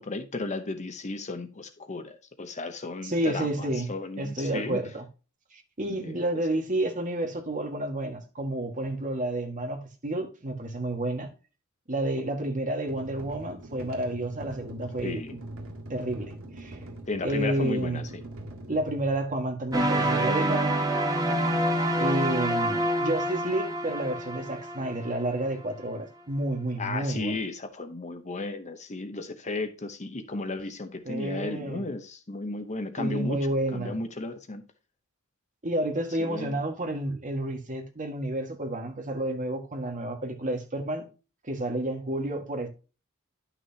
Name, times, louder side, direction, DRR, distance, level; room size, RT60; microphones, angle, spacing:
voice 1, 0.0-4.8 6.0-6.2 6.5-6.6 15.0-15.4 17.1-18.2 26.8-33.4 33.7-34.6 36.2-36.6, left 2 dB, 30° left, 0.9 m, -34 dB
voice 2, 3.0-3.9 4.2-5.1 5.5-11.3 11.9-15.2 15.9-16.8 17.2-18.1 18.7-20.8 22.0-27.4 31.1-31.8 33.0-34.0 35.6-41.1 41.5-42.7, right 1 dB, 35° right, 1.8 m, -30 dB
sound 1, 12.9-19.7, right 1 dB, 65° right, 2.4 m, -43 dB
sound 2, 19.7-25.6, right 1 dB, 15° right, 1.3 m, -27 dB
11.0 x 6.0 x 2.8 m
head